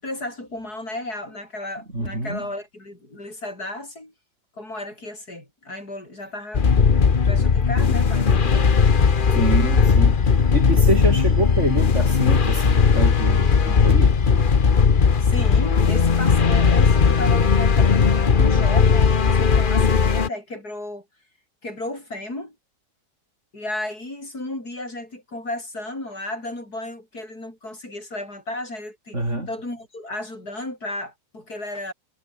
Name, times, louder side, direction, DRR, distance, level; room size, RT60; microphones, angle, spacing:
voice 1, 0.0-4.1 4.6-6.7 7.2-8.8 15.2-21.0 21.6-22.5 23.5-29.2 29.5-31.9, left 1 dB, 55° left, 8.6 m, -34 dB
voice 2, 1.9-2.4 9.3-14.1 29.1-29.5, right 1 dB, 40° right, 7.7 m, -26 dB
sound 1, 6.5-20.3, left 5 dB, 35° left, 1.1 m, -17 dB
omnidirectional pair, 1.9 m